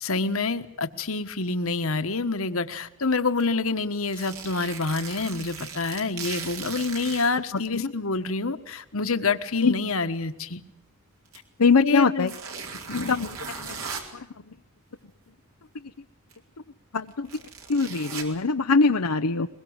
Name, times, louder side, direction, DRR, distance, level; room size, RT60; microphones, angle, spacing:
voice 1, 0.0-10.6 11.8-12.3 12.9-13.1, left 3 dB, 65° left, 10 dB, 1.4 m, -27 dB
sound 1, 3.4-3.5 4.1-7.3 8.2-8.3 11.3-11.4 12.2-14.1 16.3-16.4 17.0-18.2, right 5 dB, 70° right, 4.3 m, -38 dB
voice 2, 11.6-12.3 12.9-13.3 13.6-13.8 14.1-14.3 16.9-17.3 17.7-19.5, left 4 dB, 90° left, 6 dB, 0.8 m, -22 dB
22.0 x 22.0 x 8.0 m, 0.84 s
head